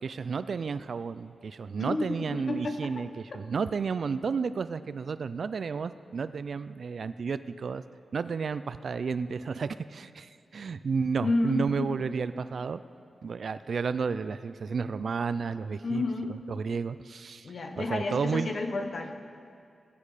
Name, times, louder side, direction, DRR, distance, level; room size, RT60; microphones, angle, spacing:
voice 1, 0.0-7.8 8.1-12.8 13.2-16.0 16.5-18.5, right 5 dB, 55° right, 13 dB, 0.3 m, -32 dB
voice 2, 1.8-3.0 3.3-3.4 11.2-12.0 15.8-16.3 17.4-19.2, left 2 dB, 50° left, 6 dB, 1.1 m, -31 dB
20.5 x 8.7 x 4.9 m, 2.3 s
wide cardioid pair, 150°, 0 cm